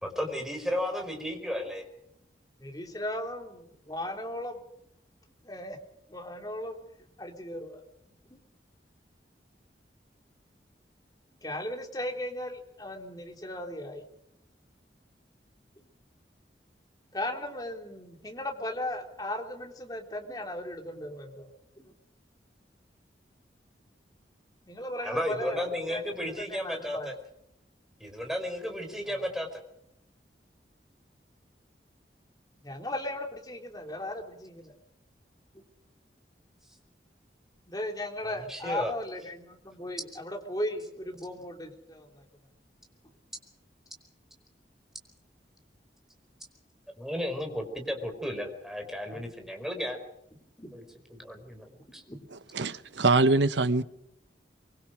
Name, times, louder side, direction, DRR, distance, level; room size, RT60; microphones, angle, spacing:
voice 1, 0.0-1.9 25.0-27.2 28.0-29.6 38.2-38.9 47.0-50.0 50.7-50.8 51.1-52.0, equal, ahead, 4.8 m, -34 dB
voice 2, 2.6-4.6 5.4-5.8 6.1-6.8 7.2-7.8 8.3-8.4 11.4-14.0 17.1-21.5 21.8-21.9 24.7-26.0 26.5-27.1 32.6-34.7 37.7-42.2 49.1-49.2 50.6-50.8 51.8-52.3, left 1 dB, 20° left, 3.6 m, -37 dB
voice 3, 52.3-53.8, right 3 dB, 90° right, 1.1 m, -24 dB
24.5 x 24.0 x 5.1 m
head